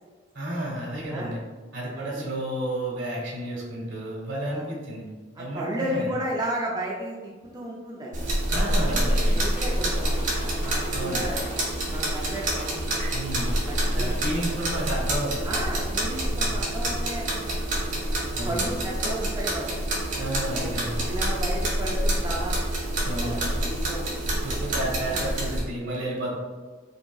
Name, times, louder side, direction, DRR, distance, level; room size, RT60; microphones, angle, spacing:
voice 1, 0.3-1.4 1.7-5.0 5.4-6.1 8.5-9.4 10.9-11.2 13.1-13.5 13.8-15.5 16.4-16.5 18.3-18.7 20.1-21.1 23.0-23.4 24.4-26.3, right 1 dB, 70° right, -4 dB, 1.4 m, -31 dB
voice 2, 1.9-2.3 4.5-4.6 5.4-8.2 8.8-11.4 11.9-12.9 13.7-14.1 15.4-17.6 18.4-19.9 20.5-20.8 21.1-22.6 23.0-24.2 25.1-25.2, right 1 dB, 20° right, -4 dB, 0.5 m, -34 dB
sound 1, 8.1-25.6, right 1 dB, 40° right, 1.2 m, -27 dB
sound 2, 9.0-15.1, equal, 60° left, 1.2 m, -44 dB
5.1 x 2.9 x 2.3 m, 1.4 s
head